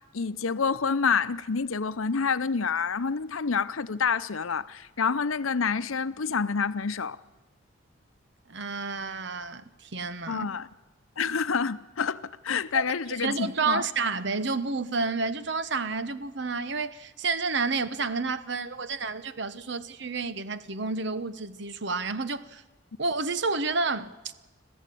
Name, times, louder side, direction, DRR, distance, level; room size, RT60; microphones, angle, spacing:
voice 1, 0.1-7.2 10.3-10.7 11.2-13.9, left 5 dB, 80° left, 0.8 m, -28 dB
voice 2, 8.5-10.5 13.2-22.6 23.0-24.1, right 4 dB, 55° right, 1.0 m, -30 dB
26.0 x 15.5 x 8.5 m
head